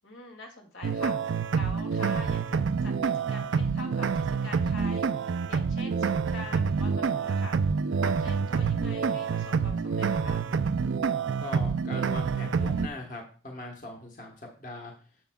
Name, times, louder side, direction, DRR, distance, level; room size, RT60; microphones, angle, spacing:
voice 1, 0.0-1.1 1.5-7.6 8.0-10.5, left 2 dB, 85° left, 2 dB, 2.3 m, -44 dB
sound 1, 0.8-12.9, right 5 dB, 80° right, 0.4 m, -27 dB
voice 2, 11.4-14.9, left 2 dB, 40° left, 2 dB, 1.2 m, -40 dB
10.5 x 7.2 x 2.3 m, 0.39 s
head